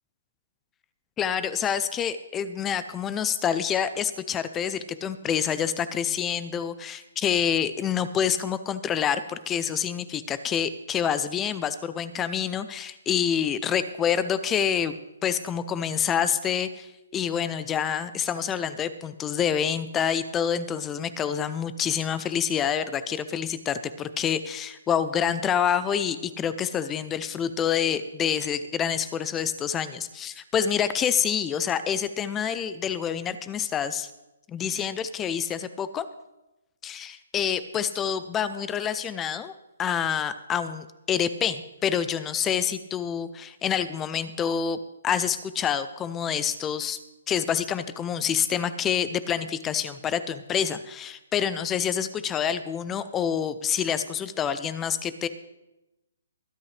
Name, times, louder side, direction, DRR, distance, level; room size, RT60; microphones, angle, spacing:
voice 1, 1.2-14.9 15.2-34.1 34.5-36.1 36.8-39.5 39.8-44.8 45.0-47.0 47.3-55.3, left 8 dB, 10° left, 13 dB, 0.4 m, -27 dB
22.5 x 8.6 x 3.2 m, 0.97 s
hypercardioid pair, 165°, 0 cm